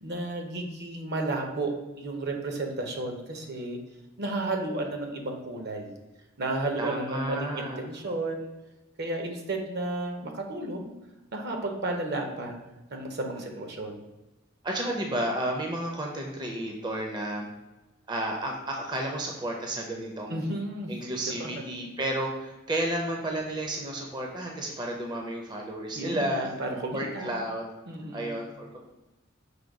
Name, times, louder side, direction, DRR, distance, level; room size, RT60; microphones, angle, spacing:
voice 1, 0.0-3.8 4.2-5.9 6.4-8.5 9.0-10.9 11.3-12.6 12.9-14.0 20.3-20.9 21.4-21.5 25.9-27.4 27.9-28.4, right 2 dB, 55° right, 3 dB, 0.7 m, -32 dB
voice 2, 6.8-7.8 13.3-13.4 14.6-17.5 18.1-20.4 20.9-26.5 26.9-27.6 28.1-28.8, right 1 dB, 20° right, 0 dB, 0.5 m, -32 dB
5.0 x 2.2 x 4.6 m, 1.1 s
head